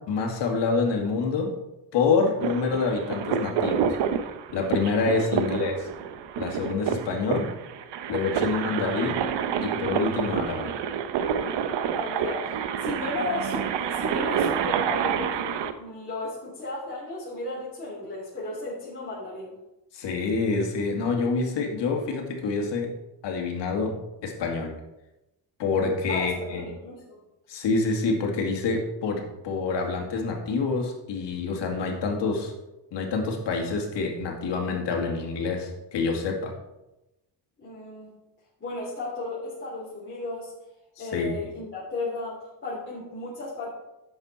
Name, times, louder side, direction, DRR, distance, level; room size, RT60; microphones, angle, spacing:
voice 1, 0.1-1.5 1.9-4.0 4.5-5.7 6.4-7.5 8.1-9.2 9.6-10.7 19.9-22.9 23.2-23.9 24.2-24.7 25.6-26.6 27.5-32.5 32.9-36.5 41.0-41.3, left 4 dB, 80° left, 2 dB, 2.3 m, -27 dB
sound 1, 2.4-15.7, right 7 dB, 80° right, 0.9 m, -28 dB
voice 2, 11.9-19.5 26.1-27.2 37.6-38.1 38.6-40.5 41.0-43.7, left 2 dB, 30° left, -8 dB, 3.4 m, -34 dB
11.0 x 7.8 x 4.2 m, 0.95 s
cardioid pair, 135°, 42 cm